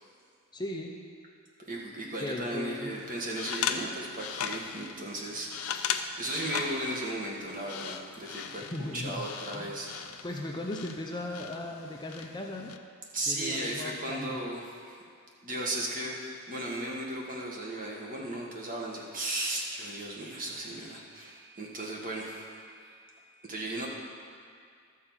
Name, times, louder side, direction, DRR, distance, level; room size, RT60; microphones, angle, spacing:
voice 1, 0.5-1.0 2.2-2.9 8.6-9.3 9.5-9.9 10.2-12.7 13.3-14.4, left 1 dB, 20° left, 1 dB, 0.6 m, -37 dB
voice 2, 1.6-9.9 13.1-15.0 15.4-23.0 23.5-23.9, right 1 dB, 40° right, -2 dB, 1.5 m, -36 dB
sound 1, 2.9-12.8, left 8 dB, 75° left, 0.5 m, -38 dB
12.5 x 4.6 x 7.2 m, 2.2 s
head